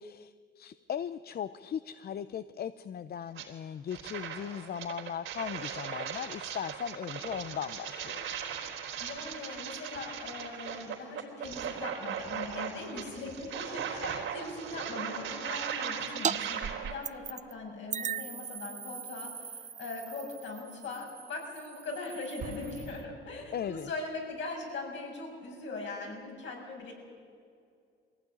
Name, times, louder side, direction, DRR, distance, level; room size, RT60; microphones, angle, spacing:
voice 1, 0.0-8.2 14.0-14.4 23.5-23.9, left 8 dB, 50° left, 14 dB, 0.7 m, -38 dB
sound 1, 3.3-3.5 3.9-16.9, right 8 dB, 85° right, 3.7 m, -38 dB
voice 2, 9.0-14.0 14.3-26.9, left 3 dB, 70° left, 1 dB, 6.7 m, -40 dB
sound 2, 16.2-16.4 16.6-17.5 17.9-23.0, right 7 dB, 35° right, 0.6 m, -38 dB
Explosion, 22.4-24.2, right 4 dB, 55° right, 2.1 m, -46 dB
22.0 x 15.5 x 9.9 m, 2.3 s
cardioid pair, 90°, 20 cm